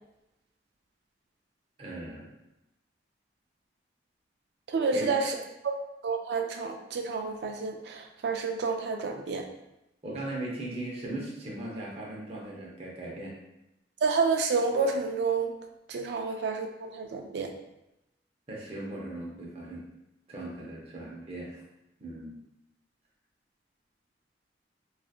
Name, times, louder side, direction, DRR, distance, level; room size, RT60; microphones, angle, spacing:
voice 1, 1.8-2.3 4.9-5.1 10.0-13.4 16.1-16.2 18.5-19.8 20.3-21.6 22.0-22.4, right 1 dB, 35° right, -3 dB, 0.7 m, -38 dB
voice 2, 4.7-5.4 5.6-5.8 6.0-9.5 14.0-15.5 15.9-17.5, right 4 dB, 65° right, 4 dB, 0.3 m, -29 dB
2.7 x 2.4 x 2.4 m, 0.89 s
head